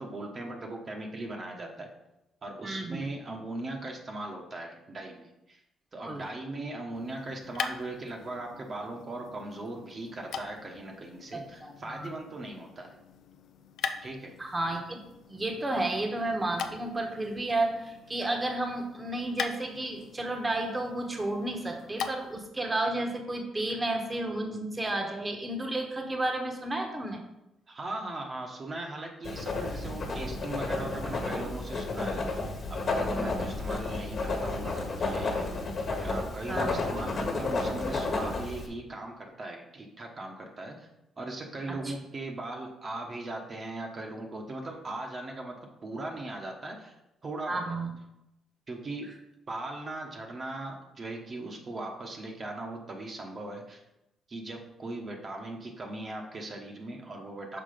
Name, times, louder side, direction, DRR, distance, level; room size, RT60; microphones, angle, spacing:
voice 1, 0.0-1.9 2.4-5.6 5.9-13.0 14.0-14.3 27.7-32.4 32.7-35.6 35.9-40.9 41.2-46.9 47.2-47.7 48.7-49.2 49.5-53.8 54.3-57.6, right 2 dB, 40° right, 1 dB, 1.0 m, -39 dB
voice 2, 2.6-3.0 6.1-6.2 11.3-12.1 14.4-15.0 15.3-27.2 33.1-33.5 36.5-36.8 41.8-41.9 47.5-47.9, right 2 dB, 20° right, 3 dB, 1.1 m, -32 dB
sound 1, 6.9-22.5, left 7 dB, 75° left, 0.5 m, -42 dB
Writing, 29.2-38.7, left 3 dB, 45° left, 1.4 m, -32 dB
5.9 x 4.5 x 5.1 m, 0.89 s
cardioid pair, 90°, 0 cm